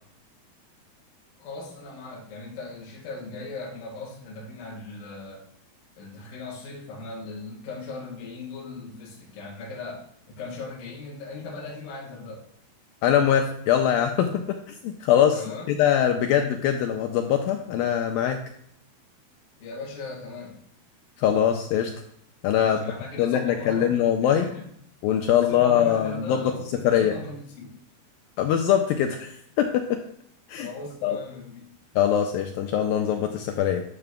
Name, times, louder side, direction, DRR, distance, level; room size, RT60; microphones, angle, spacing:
voice 1, 1.4-5.5 6.0-12.4 15.3-15.8 19.6-20.6 22.6-23.9 24.2-24.6 25.3-27.8 30.6-31.8, left 3 dB, 60° left, -3 dB, 3.2 m, -39 dB
voice 2, 13.0-15.4 15.7-18.4 21.2-21.9 22.4-22.8 23.2-24.5 25.0-26.5 26.8-27.1 28.4-30.0 30.5-30.7 31.0-31.2 32.0-33.8, left 9 dB, 90° left, 4 dB, 2.1 m, -22 dB
12.5 x 6.8 x 2.2 m, 0.68 s
omnidirectional pair, 4.7 m